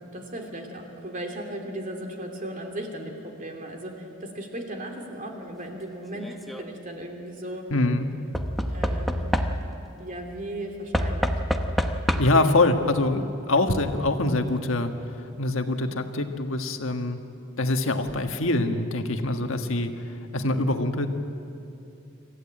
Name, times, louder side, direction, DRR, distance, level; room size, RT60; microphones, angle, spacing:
voice 1, 0.1-7.7 8.7-9.5 10.0-11.4, right 1 dB, 40° right, 2 dB, 2.9 m, -36 dB
Knock / Wood, 6.1-6.6 8.3-9.9 10.9-12.5 13.6-13.7 13.9-14.0, equal, ahead, 0.9 m, -27 dB
voice 2, 7.7-8.1 12.2-14.9 15.4-17.2 17.6-19.9 20.3-21.1, left 2 dB, 75° left, 5 dB, 1.5 m, -24 dB
26.5 x 14.5 x 8.9 m, 2.7 s
head